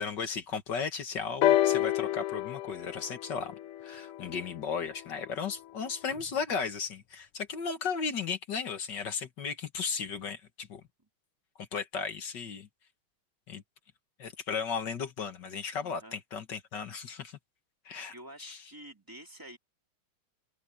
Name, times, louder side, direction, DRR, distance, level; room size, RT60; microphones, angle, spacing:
voice 1, 0.0-3.5 3.8-10.8 11.6-12.7 13.5-13.6 14.2-17.4 17.9-18.1 18.4-18.7, left 6 dB, 55° left, 1.9 m, -35 dB
sound 1, 1.4-5.2 6.2-6.3, left 13 dB, 85° left, 1.7 m, -29 dB
voice 2, 15.7-16.2 18.1-19.6, right 1 dB, 10° right, 3.2 m, -48 dB
open air
omnidirectional pair, 2.4 m